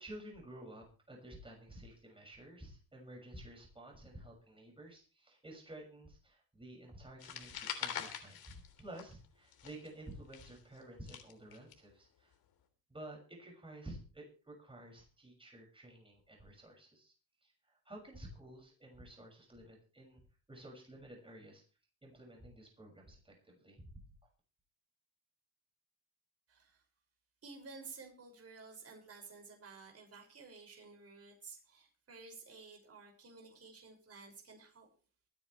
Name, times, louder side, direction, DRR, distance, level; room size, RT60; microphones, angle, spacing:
voice 1, 0.0-12.3 12.9-17.1 17.4-20.2 20.5-21.6 22.0-23.9, right 1 dB, 15° right, 0 dB, 6.5 m, -52 dB
sound 1, 7.2-9.3 9.5-11.7, left 9 dB, 70° left, 3.7 m, -44 dB
voice 2, 26.5-26.8 27.4-34.9, right 4 dB, 40° right, 1 dB, 6.3 m, -53 dB
24.5 x 10.5 x 3.3 m, 0.36 s
cardioid pair, 85°, 38 cm